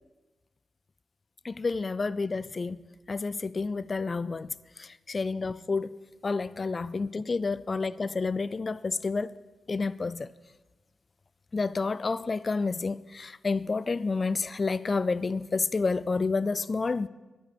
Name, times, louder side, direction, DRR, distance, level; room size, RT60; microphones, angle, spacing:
voice 1, 1.4-2.8 3.1-4.5 4.8-5.9 6.2-9.3 9.7-10.3 11.5-17.1, left 4 dB, 45° left, 0.4 m, -29 dB
11.0 x 10.0 x 5.2 m
supercardioid pair, 45°, 0 cm